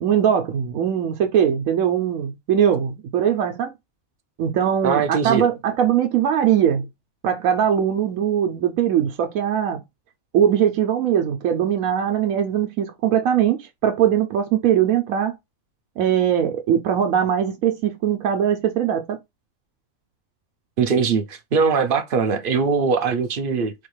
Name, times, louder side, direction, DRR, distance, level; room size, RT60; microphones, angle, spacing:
voice 1, 0.0-3.7 4.4-6.9 7.2-9.8 10.3-15.3 16.0-19.2, right 9 dB, 80° right, 1.1 m, -21 dB
voice 2, 4.8-5.5 20.8-23.7, right 5 dB, 55° right, 0.6 m, -21 dB
4.3 x 2.4 x 3.1 m
omnidirectional pair, 1.4 m